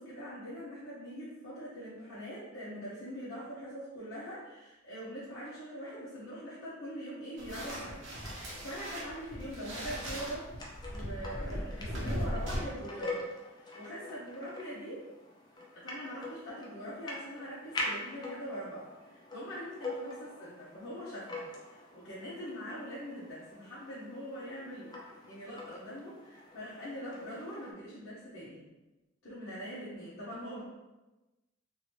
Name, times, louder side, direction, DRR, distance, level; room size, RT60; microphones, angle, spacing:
voice 1, 0.0-10.5 10.9-13.5 13.7-15.0 15.7-28.6 29.2-30.6, equal, 60° left, -11 dB, 0.9 m, -43 dB
sound 1, 7.4-12.6, equal, 60° right, 0.9 m, -38 dB
sound 2, 9.1-27.7, left 2 dB, 20° left, 0.5 m, -45 dB
2.9 x 2.7 x 3.0 m, 1.1 s
head